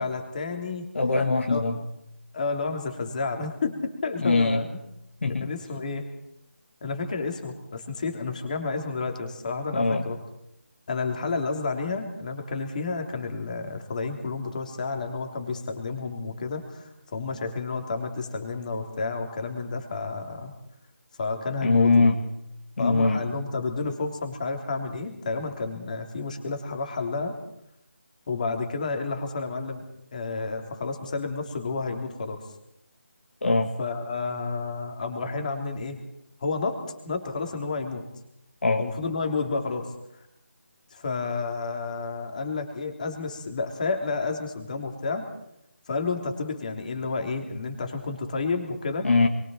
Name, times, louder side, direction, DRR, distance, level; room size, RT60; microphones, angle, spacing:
voice 1, 0.0-0.9 1.5-1.6 2.3-4.7 5.4-6.0 6.8-10.2 10.9-20.5 21.2-22.1 22.8-27.4 28.3-29.8 30.1-32.4 33.8-36.0 36.4-38.1 38.8-39.9 40.9-45.3 45.9-49.1, left 4 dB, 30° left, 4 dB, 3.3 m, -30 dB
voice 2, 0.9-1.8 4.2-4.6 5.2-5.5 9.7-10.0 21.6-22.2 22.8-23.2 33.4-33.7 38.6-38.9 49.0-49.3, left 3 dB, 55° left, 3 dB, 2.1 m, -22 dB
28.0 x 22.5 x 4.5 m, 0.79 s
figure-of-eight pair, 170°, 8 cm